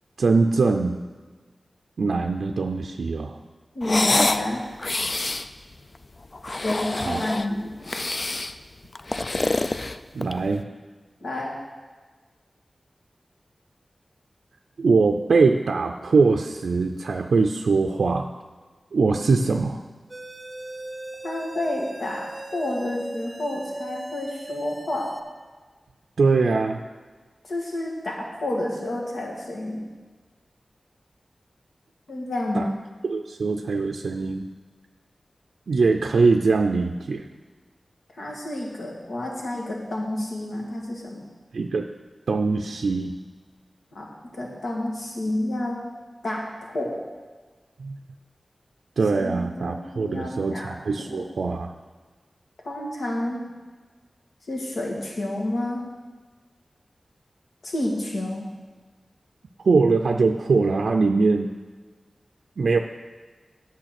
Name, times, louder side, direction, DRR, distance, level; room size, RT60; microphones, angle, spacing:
voice 1, 0.2-1.0 2.0-3.4 6.9-7.2 10.1-10.7 14.8-18.3 18.9-19.8 26.2-26.8 32.5-32.6 33.0-34.5 35.7-37.2 41.5-41.9 42.3-43.2 47.8-48.0 49.0-51.7 59.6-61.5 62.6-62.8, right 4 dB, 85° right, 4 dB, 0.4 m, -22 dB
voice 2, 3.8-4.6 6.6-8.0 11.2-11.6 21.2-25.1 27.4-29.9 32.1-32.7 38.2-41.3 43.9-45.8 46.2-47.0 49.2-51.3 52.6-53.5 54.5-55.8 57.6-58.5, left 1 dB, 80° left, -1 dB, 1.8 m, -30 dB
sound 1, 3.8-4.5 4.8-5.5 6.3-7.5 7.9-8.5 9.0-10.5, left 2 dB, 45° left, 0.4 m, -26 dB
sound 2, 20.1-25.2, right 2 dB, 30° right, 0.8 m, -38 dB
9.0 x 7.1 x 5.9 m, 1.4 s
wide cardioid pair, 70°, 0 cm